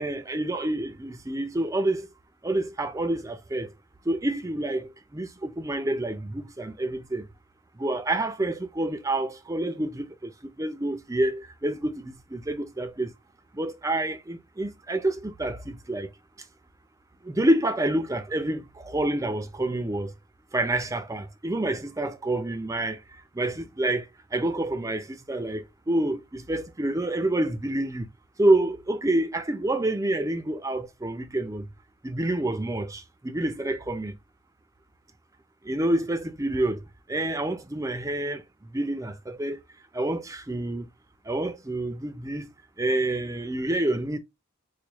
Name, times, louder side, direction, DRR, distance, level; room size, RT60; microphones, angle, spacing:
voice 1, 0.0-2.1 2.4-3.7 4.0-7.3 7.7-13.1 13.5-16.1 17.2-20.1 20.5-28.1 28.4-31.7 32.0-34.2 35.6-38.4 38.7-39.6 39.9-40.9 41.2-42.5 42.8-44.2, right 1 dB, 15° right, 0.4 m, -28 dB
4.7 x 2.3 x 2.9 m
head